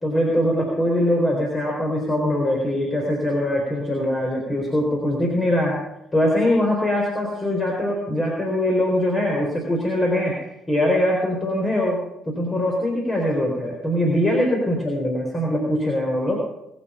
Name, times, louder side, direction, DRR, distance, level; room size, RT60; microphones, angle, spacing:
voice 1, 0.0-5.8 6.1-16.4, left 1 dB, 25° left, -1 dB, 4.0 m, -22 dB
21.0 x 7.8 x 5.7 m, 0.83 s
figure-of-eight pair, 45°, 0 cm